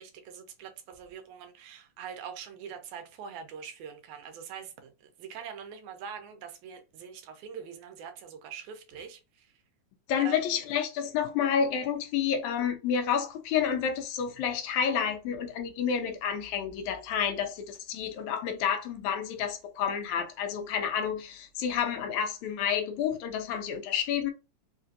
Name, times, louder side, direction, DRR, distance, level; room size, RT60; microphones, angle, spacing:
voice 1, 0.0-4.9 5.2-9.5 10.2-10.4, right 7 dB, 85° right, 2.1 m, -43 dB
voice 2, 10.1-24.3, left 8 dB, 80° left, 1.9 m, -29 dB
5.0 x 2.5 x 2.6 m
omnidirectional pair, 3.4 m